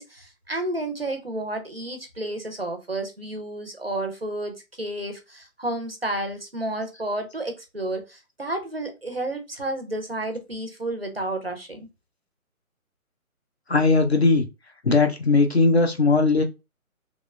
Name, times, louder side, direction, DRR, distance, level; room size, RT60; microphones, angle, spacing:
voice 1, 0.0-11.9, right 1 dB, 45° right, 0.4 m, -31 dB
voice 2, 13.7-14.5 14.8-16.4, left 3 dB, 50° left, 0.4 m, -19 dB
2.9 x 2.1 x 2.2 m
hypercardioid pair, 175°, 43 cm